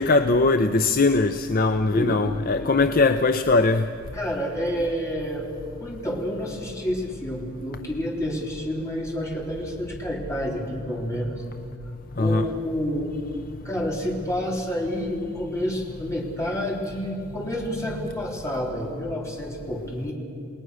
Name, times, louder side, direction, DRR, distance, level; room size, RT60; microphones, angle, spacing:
voice 1, 0.0-3.9 12.2-12.5, left 3 dB, 40° left, 8 dB, 0.6 m, -20 dB
voice 2, 1.8-2.1 2.6-2.7 4.1-5.4 5.8-11.4 12.2-13.1 13.6-20.1, equal, 15° left, -2 dB, 3.7 m, -29 dB
29.0 x 19.0 x 6.4 m, 2.7 s
head